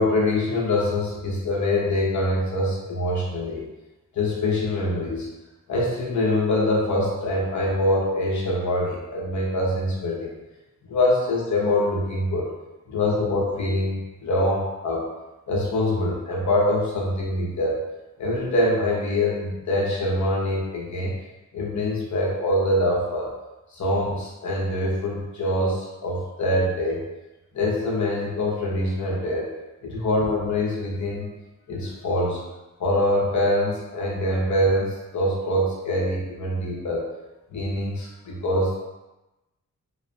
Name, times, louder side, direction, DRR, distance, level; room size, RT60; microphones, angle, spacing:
voice 1, 0.0-3.7 4.1-5.3 5.7-10.3 10.9-12.6 12.9-15.1 15.5-17.8 18.2-21.1 21.5-23.3 23.7-27.0 27.5-29.5 29.8-31.3 31.7-32.4 32.8-37.0 37.5-38.8, left 1 dB, 60° left, -3 dB, 0.6 m, -24 dB
2.6 x 2.1 x 2.5 m, 1.0 s
wide cardioid pair, 170°, 33 cm